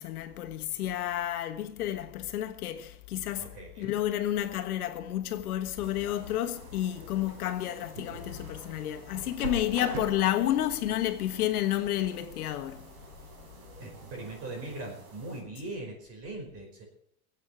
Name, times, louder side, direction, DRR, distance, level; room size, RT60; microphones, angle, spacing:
voice 1, 0.0-13.0, left 12 dB, 75° left, 1.5 m, -31 dB
voice 2, 3.4-3.9 13.8-16.8, right 2 dB, 30° right, 5.0 m, -40 dB
sound 1, 5.8-15.4, right 3 dB, 70° right, 5.0 m, -45 dB
22.0 x 8.5 x 6.0 m
supercardioid pair, 155°, 45 cm